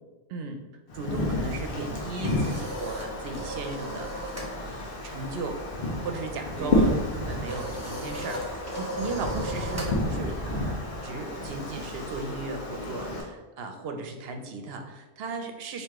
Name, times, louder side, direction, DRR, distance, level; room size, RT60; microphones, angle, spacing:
voice 1, 0.3-0.6 0.9-4.4 4.6-5.6 6.0-15.8, right 3 dB, 70° right, 5 dB, 0.8 m, -36 dB
Wind, 0.9-13.2, left 1 dB, 55° left, 1.1 m, -31 dB
sound 1, 2.2-4.6 4.8-5.1 5.4-12.1, equal, 15° right, 0.7 m, -39 dB
4.7 x 2.7 x 3.5 m, 1.2 s
omnidirectional pair, 1.1 m